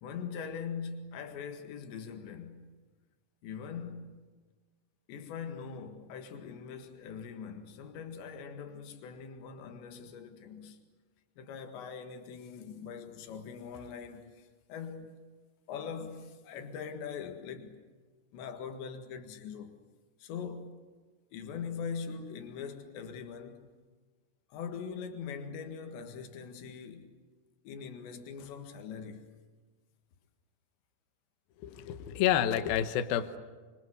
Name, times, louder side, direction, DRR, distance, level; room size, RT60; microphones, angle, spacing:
voice 1, 0.0-2.8 3.4-4.3 5.1-10.8 11.4-15.1 15.7-17.8 18.3-19.8 20.2-20.8 21.3-23.7 24.5-27.1 27.7-29.3, left 6 dB, 85° left, 4.1 m, -42 dB
voice 2, 31.6-33.4, left 10 dB, 70° left, 2.7 m, -29 dB
26.0 x 26.0 x 8.0 m
omnidirectional pair, 4.9 m